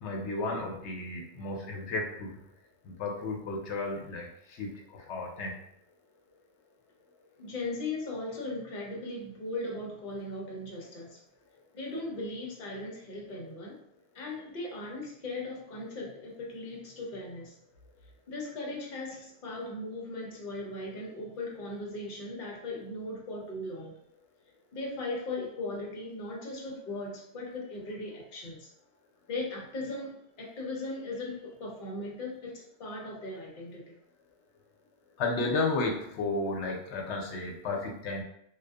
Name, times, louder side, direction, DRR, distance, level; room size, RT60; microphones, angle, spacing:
voice 1, 0.0-2.4 2.8-5.6 35.2-38.2, left 3 dB, 80° left, 0 dB, 0.9 m, -33 dB
voice 2, 7.4-11.2 11.7-13.8 14.1-17.6 18.3-24.0 24.7-28.7 29.3-33.9, left 2 dB, 55° left, -2 dB, 0.8 m, -38 dB
2.5 x 2.3 x 2.3 m, 0.73 s
omnidirectional pair, 1.1 m